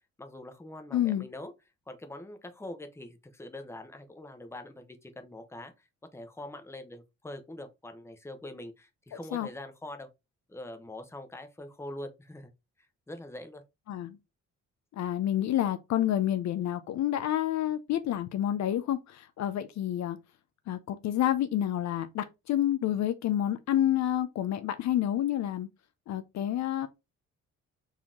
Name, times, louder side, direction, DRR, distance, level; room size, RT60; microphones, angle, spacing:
voice 1, 0.2-1.5 1.9-5.9 6.1-10.1 10.5-12.5 13.1-13.6, left 1 dB, 10° left, 0.8 m, -43 dB
voice 2, 0.9-1.3 9.3-9.5 13.9-14.2 14.9-20.2 20.7-25.7 26.1-26.9, left 12 dB, 65° left, 0.6 m, -29 dB
4.1 x 2.9 x 3.7 m
cardioid pair, 90°, 30 cm